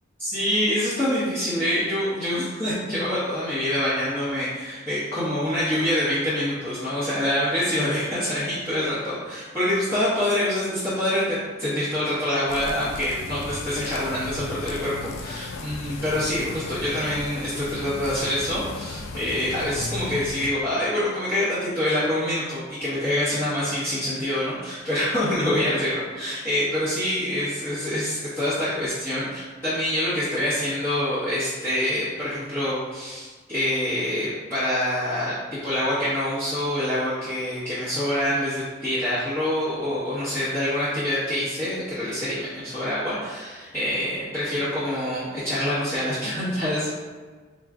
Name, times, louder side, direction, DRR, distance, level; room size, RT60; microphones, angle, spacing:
voice 1, 0.2-46.9, left 1 dB, 10° left, -15 dB, 1.1 m, -26 dB
sound 1, 12.5-20.5, left 3 dB, 80° left, 0.4 m, -36 dB
3.5 x 2.4 x 3.6 m, 1.4 s
head